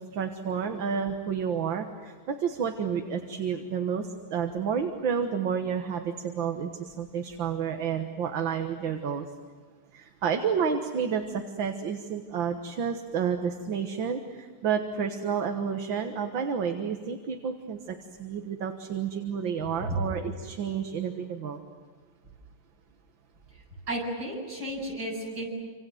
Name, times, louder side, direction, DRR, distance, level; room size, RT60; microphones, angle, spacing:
voice 1, 0.0-9.3 9.9-21.6, right 7 dB, 70° right, 5 dB, 2.1 m, -30 dB
voice 2, 23.5-25.5, right 1 dB, 50° right, -2 dB, 8.4 m, -33 dB
28.0 x 27.0 x 7.9 m, 1.5 s
omnidirectional pair, 2.3 m